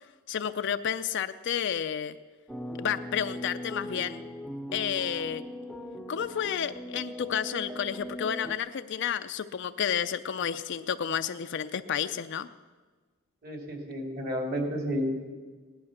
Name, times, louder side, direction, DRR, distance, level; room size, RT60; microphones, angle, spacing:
voice 1, 0.3-2.2 2.8-4.2 4.7-5.4 6.1-12.5, left 8 dB, 60° left, 9 dB, 0.4 m, -31 dB
sound 1, 2.5-8.6, left 1 dB, ahead, 0.7 m, -40 dB
voice 2, 13.4-15.3, equal, 50° right, 2 dB, 2.8 m, -31 dB
17.0 x 11.5 x 6.5 m, 1.4 s
head